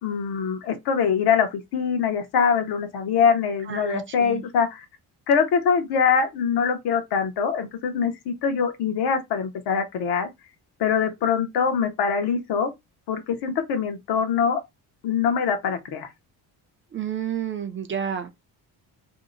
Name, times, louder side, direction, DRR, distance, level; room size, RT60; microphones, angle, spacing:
voice 1, 0.0-4.8 5.3-10.3 10.8-12.7 13.1-14.6 15.0-16.1, left 6 dB, 70° left, 0.9 m, -23 dB
voice 2, 3.7-4.4 16.9-18.3, right 8 dB, 30° right, 0.4 m, -30 dB
2.8 x 2.0 x 3.7 m
cardioid pair, 120°, 40 cm